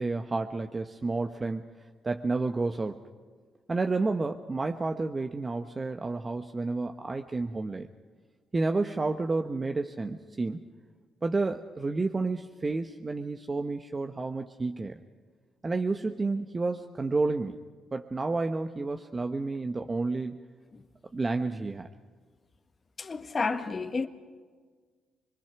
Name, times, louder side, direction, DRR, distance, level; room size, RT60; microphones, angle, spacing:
voice 1, 0.0-1.6 2.0-3.0 3.7-7.9 8.5-10.7 11.2-15.0 15.6-17.6 17.9-20.4 21.1-21.9, right 3 dB, 30° right, 1.0 m, -30 dB
voice 2, 23.0-24.1, left 4 dB, 40° left, 1.5 m, -31 dB
26.0 x 21.0 x 6.0 m
hypercardioid pair, 50°, 0 cm